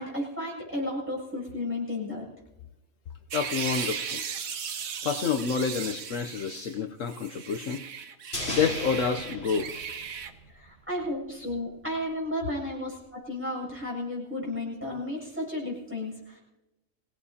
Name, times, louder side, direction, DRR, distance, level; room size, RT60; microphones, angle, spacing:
voice 1, 0.0-2.3 10.5-16.4, left 1 dB, 10° right, -3 dB, 7.3 m, -33 dB
voice 2, 3.3-4.2 5.0-7.8 8.5-9.7, left 6 dB, 70° left, 5 dB, 1.1 m, -28 dB
sound 1, 3.3-6.8 7.1-10.3, right 7 dB, 85° right, 1.4 m, -36 dB
sound 2, 8.3-10.7 11.0-11.1, equal, 50° left, 4.0 m, -37 dB
26.0 x 17.5 x 2.8 m, 0.97 s
omnidirectional pair, 1.4 m